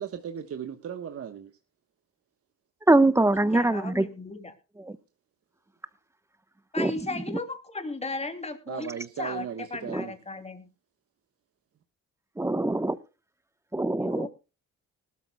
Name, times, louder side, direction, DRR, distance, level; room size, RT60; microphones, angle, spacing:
voice 1, 0.0-1.5 8.7-10.1, right 8 dB, 50° right, 7 dB, 1.2 m, -36 dB
voice 2, 2.9-4.1 4.8-5.0 6.8-6.9 9.9-10.0 12.4-13.0 13.7-14.3, right 2 dB, 10° right, 14 dB, 1.0 m, -23 dB
voice 3, 3.5-4.5 6.7-10.7 14.0-14.3, left 3 dB, 20° left, 7 dB, 2.8 m, -36 dB
19.5 x 13.0 x 2.3 m, 0.31 s
cardioid pair, 90°, 30 cm